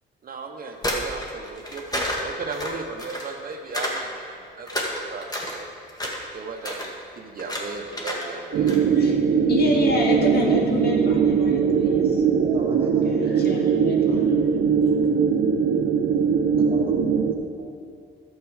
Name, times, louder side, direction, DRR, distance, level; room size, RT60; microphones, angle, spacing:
voice 1, 0.2-5.7 6.3-8.7, right 4 dB, 45° right, 3 dB, 0.9 m, -36 dB
sound 1, 0.7-3.3 3.7-4.0 4.3-5.6 5.9-6.3 6.6-6.9 7.4-7.6 7.9-8.2 8.5-8.8, left 1 dB, 20° left, 1.7 m, -29 dB
sound 2, 8.5-17.3, right 6 dB, 75° right, 0.7 m, -21 dB
voice 2, 8.8-9.2 9.5-12.5 13.0-14.3, left 2 dB, 55° left, -1 dB, 1.9 m, -28 dB
voice 3, 12.3-14.0 16.6-16.9 17.3-17.8, right 3 dB, 25° right, -1 dB, 2.2 m, -40 dB
11.0 x 7.4 x 4.8 m, 2.3 s
cardioid pair, 90°, 20 cm